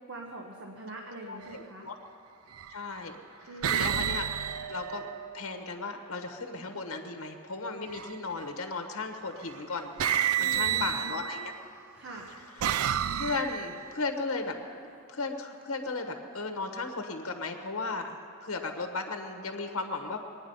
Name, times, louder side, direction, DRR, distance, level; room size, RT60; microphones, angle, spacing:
voice 1, 0.1-1.9 3.5-3.9 10.4-11.2 11.9-12.3, right 2 dB, 60° right, 0 dB, 1.2 m, -43 dB
voice 2, 1.3-2.0 2.7-3.2 3.7-4.3 4.7-5.0 5.3-10.1 10.4-11.5 12.6-12.8 13.1-14.6 15.1-20.2, left 3 dB, 70° left, 5 dB, 1.2 m, -35 dB
sound 1, 1.4-1.6 2.5-3.0 3.6-5.7 7.9-8.4 9.5-9.6 10.0-11.6 12.2-13.9, right 10 dB, 80° right, 0.4 m, -31 dB
22.5 x 9.7 x 5.4 m, 2.5 s
head